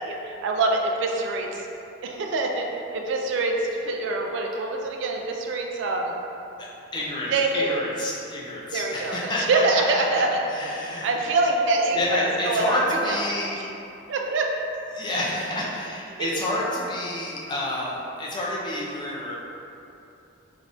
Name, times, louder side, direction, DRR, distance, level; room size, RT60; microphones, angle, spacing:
voice 1, 0.0-1.7 2.0-6.2 7.3-7.8 8.7-10.4 10.7-13.2 13.6-13.7 14.1-14.5 16.1-16.3, right 3 dB, 65° right, 2 dB, 0.3 m, -25 dB
voice 2, 6.6-9.6 10.5-11.1 11.9-13.6 14.9-19.4, left 1 dB, 20° left, -5 dB, 0.4 m, -29 dB
3.3 x 2.4 x 2.5 m, 2.8 s
head